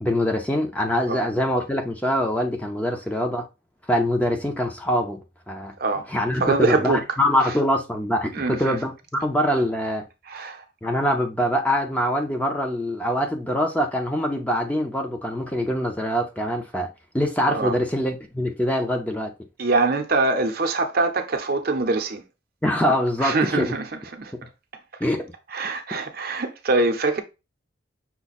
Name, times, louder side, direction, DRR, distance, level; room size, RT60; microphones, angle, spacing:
voice 1, 0.0-3.5 3.9-5.2 5.5-5.7 6.1-10.0 10.8-19.3 22.6-23.7 25.0-25.3, equal, 10° left, 0.6 m, -24 dB
voice 2, 6.4-7.0 7.4-7.6 8.3-8.8 10.3-10.6 17.5-17.8 19.6-22.2 23.2-23.8 24.1-24.3 25.5-27.2, right 3 dB, 50° right, 0.7 m, -23 dB
5.8 x 2.2 x 4.1 m
head